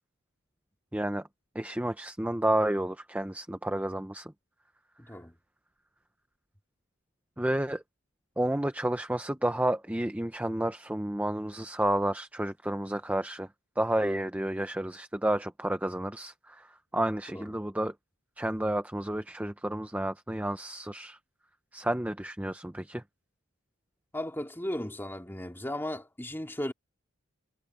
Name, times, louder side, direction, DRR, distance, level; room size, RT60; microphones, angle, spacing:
voice 1, 0.9-1.3 1.5-4.3 5.1-5.2 7.4-7.8 8.4-13.5 13.8-17.9 18.4-21.2 21.7-23.0, right 1 dB, 5° right, 0.7 m, -31 dB
voice 2, 5.0-5.3 17.3-17.5 24.1-26.7, left 1 dB, 10° left, 2.6 m, -36 dB
head